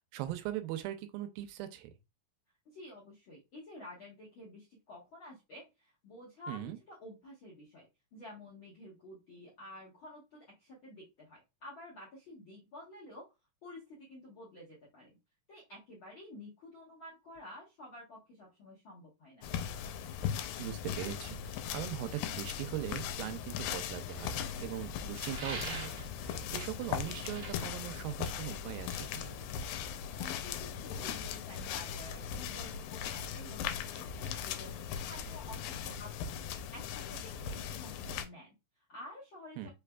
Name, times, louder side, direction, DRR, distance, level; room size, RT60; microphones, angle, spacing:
voice 1, 0.0-1.9 6.5-6.8 20.6-21.4 21.7-24.3 24.6-25.9 26.2-29.4 39.6-39.7, right 13 dB, 85° right, 2.4 m, -40 dB
voice 2, 2.6-13.3 13.6-15.2 15.5-19.5 30.2-33.6 33.9-36.3 36.7-39.7, left 1 dB, 65° left, 1.2 m, -51 dB
sound 1, 19.4-38.2, left 8 dB, 85° left, 2.3 m, -39 dB
sound 2, 25.3-26.1 27.3-27.5, right 3 dB, 40° right, 1.1 m, -41 dB
5.3 x 3.3 x 2.2 m
omnidirectional pair, 4.1 m